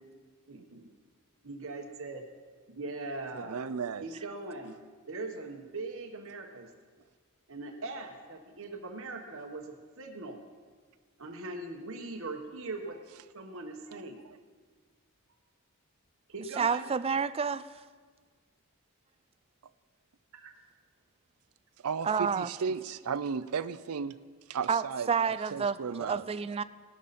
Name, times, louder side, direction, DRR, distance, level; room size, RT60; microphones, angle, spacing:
voice 1, 0.5-0.9 1.4-2.2 2.7-3.6 4.0-4.7 5.1-6.7 7.5-10.4 11.2-13.0 13.3-14.2 16.3-16.9 20.3-20.5, right 3 dB, 65° right, 3 dB, 1.2 m, -40 dB
voice 2, 3.3-4.1 21.8-24.1 24.5-25.1 25.5-26.2, right 6 dB, 85° right, 13 dB, 0.5 m, -34 dB
voice 3, 16.6-17.7 22.0-22.5 24.7-26.6, right 6 dB, 25° right, 15 dB, 0.4 m, -29 dB
18.0 x 12.0 x 4.2 m, 1.5 s
head